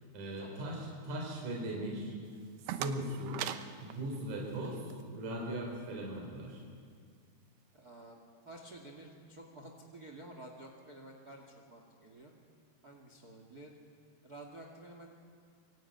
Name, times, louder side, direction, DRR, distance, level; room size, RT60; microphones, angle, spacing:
voice 1, 0.1-2.1 2.6-3.5 3.8-4.8 5.1-6.6, right 1 dB, 50° right, -1 dB, 5.3 m, -39 dB
sound 1, 2.3-5.0, right 11 dB, 85° right, 3.0 m, -42 dB
voice 2, 7.7-8.2 8.4-12.3 12.8-13.7 14.2-15.1, right 1 dB, 30° right, 2 dB, 2.1 m, -51 dB
26.0 x 23.5 x 9.4 m, 2.1 s
omnidirectional pair, 4.6 m